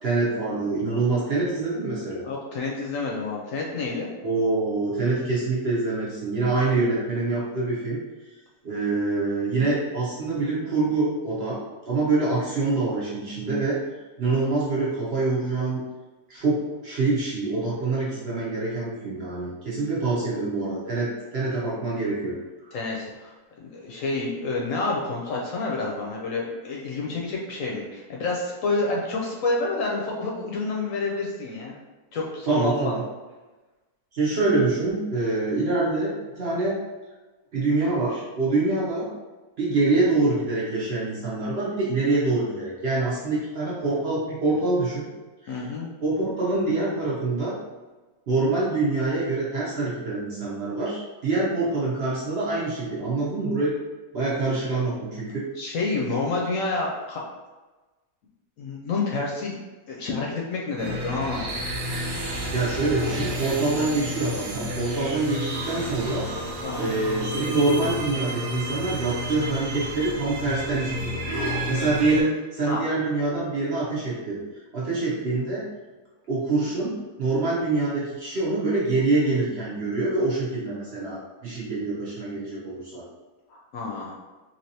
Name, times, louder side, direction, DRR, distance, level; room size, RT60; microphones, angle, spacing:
voice 1, 0.0-2.2 4.2-8.0 8.6-11.6 11.8-13.8 14.2-15.8 16.3-22.4 32.5-33.0 34.1-36.7 37.5-39.1 39.6-45.0 45.4-45.6 46.0-47.6 48.3-53.7 54.1-55.4 62.5-66.2 66.8-74.4 74.7-75.7 76.3-83.0, right 3 dB, 50° right, -7 dB, 0.8 m, -25 dB
voice 2, 2.2-4.1 22.7-31.7 32.1-32.8 45.5-45.9 55.6-57.2 58.6-59.5 59.9-61.5 66.6-66.9 72.7-72.8 83.5-84.2, left 3 dB, 70° left, -2 dB, 0.9 m, -29 dB
sound 1, 60.8-72.2, equal, 85° right, 1.3 m, -31 dB
3.3 x 2.8 x 2.7 m, 1.2 s
omnidirectional pair, 1.6 m